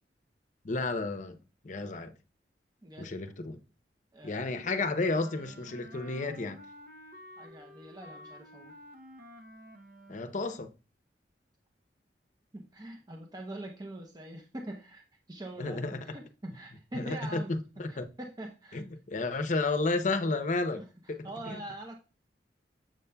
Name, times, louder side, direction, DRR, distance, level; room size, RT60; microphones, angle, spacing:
voice 1, 0.6-2.1 3.0-3.6 4.2-6.6 10.1-10.7 15.6-16.2 16.9-18.1 18.7-20.8 21.1-21.6, left 3 dB, 45° left, 0.7 m, -32 dB
voice 2, 2.8-3.1 4.1-4.6 7.4-8.7 12.5-18.8 19.1-19.3 19.6-19.7 20.7-22.0, right 1 dB, 20° right, 0.7 m, -44 dB
Wind instrument woodwind instrument, 5.1-10.4, equal, 55° right, 0.8 m, -51 dB
7.3 x 6.9 x 2.3 m
head